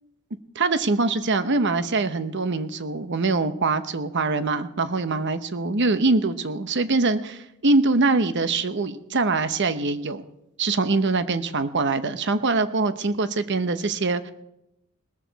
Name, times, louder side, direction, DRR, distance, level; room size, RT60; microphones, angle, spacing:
voice 1, 0.5-10.2 10.6-14.3, right 3 dB, 60° right, 11 dB, 1.0 m, -23 dB
19.5 x 14.0 x 4.1 m, 0.83 s
head